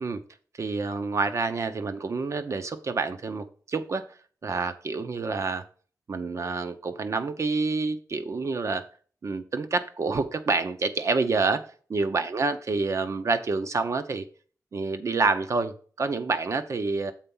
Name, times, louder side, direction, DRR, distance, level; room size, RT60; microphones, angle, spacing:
voice 1, 0.6-4.0 4.4-5.7 6.1-8.8 9.2-14.2 14.7-17.1, right 4 dB, 45° right, 10 dB, 0.8 m, -28 dB
7.4 x 4.5 x 5.5 m, 0.42 s
wide cardioid pair, 165°, 7 cm